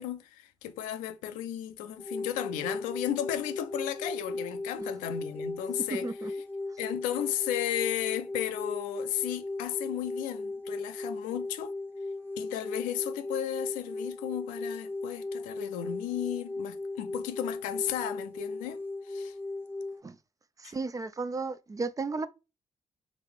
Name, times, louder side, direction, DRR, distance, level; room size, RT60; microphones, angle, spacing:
voice 1, 0.0-6.1 6.8-11.7 12.4-18.8 19.1-19.3 20.6-20.7, left 11 dB, 70° left, 0.6 m, -34 dB
sound 1, 2.0-20.0, left 2 dB, 15° left, 0.8 m, -37 dB
voice 2, 5.9-6.3 20.0-20.2 20.6-22.3, right 3 dB, 25° right, 0.5 m, -34 dB
5.0 x 3.2 x 3.3 m
figure-of-eight pair, 40°, 14 cm